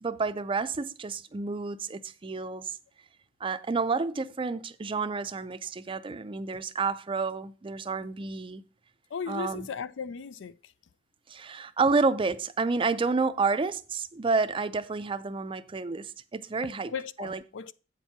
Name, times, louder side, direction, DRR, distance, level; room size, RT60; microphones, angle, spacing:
voice 1, 0.0-2.8 3.4-8.6 9.3-9.7 11.3-16.9 17.2-17.4, right 4 dB, 30° right, 0.4 m, -30 dB
voice 2, 9.1-10.7 16.8-17.7, left 6 dB, 80° left, 0.4 m, -37 dB
8.2 x 4.5 x 5.8 m
head